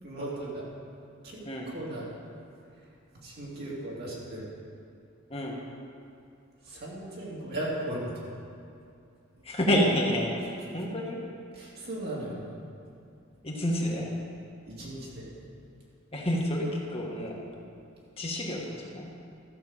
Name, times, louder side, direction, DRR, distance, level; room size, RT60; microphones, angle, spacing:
voice 1, 0.0-0.7 1.2-2.2 2.7-4.5 6.6-8.1 10.6-10.8 11.5-12.5 14.7-15.3, right 1 dB, 50° right, -5 dB, 2.8 m, -37 dB
voice 2, 5.3-5.6 9.4-11.2 13.4-14.1 16.1-17.4 18.2-19.1, equal, 30° left, -2 dB, 1.3 m, -29 dB
13.5 x 5.6 x 7.3 m, 2.5 s
head